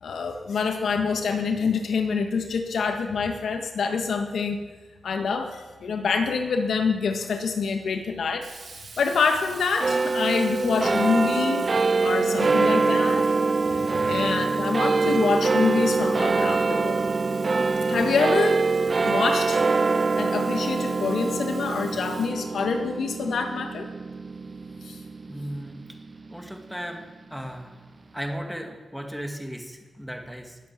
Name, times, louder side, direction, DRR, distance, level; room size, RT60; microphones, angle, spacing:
voice 1, 0.0-4.6 5.0-8.5 9.0-11.7 12.0-13.3 13.7-17.1 17.9-18.6 19.0-19.6 20.2-23.9 24.8-25.0, left 5 dB, 80° left, 5 dB, 1.7 m, -26 dB
Sink (filling or washing), 8.4-23.2, right 4 dB, 70° right, 4.0 m, -46 dB
sound 1, 9.8-26.5, right 4 dB, 40° right, 0.4 m, -24 dB
voice 2, 25.3-25.8 26.3-27.0 27.3-27.8 28.1-30.6, equal, ahead, 3 dB, 2.3 m, -36 dB
21.0 x 8.5 x 7.5 m, 1.3 s
cardioid pair, 75°, 0 cm